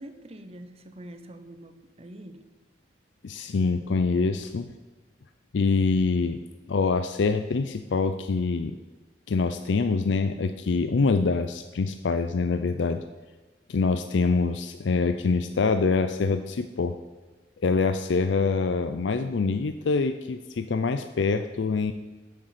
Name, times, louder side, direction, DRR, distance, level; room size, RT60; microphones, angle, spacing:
voice 1, 0.0-2.4, right 1 dB, 35° right, 8 dB, 0.8 m, -44 dB
voice 2, 3.2-4.7 5.5-6.4 6.7-8.8 9.3-13.0 13.7-17.0 17.6-21.9, left 4 dB, 75° left, 9 dB, 0.4 m, -25 dB
8.2 x 6.3 x 7.5 m, 1.2 s
head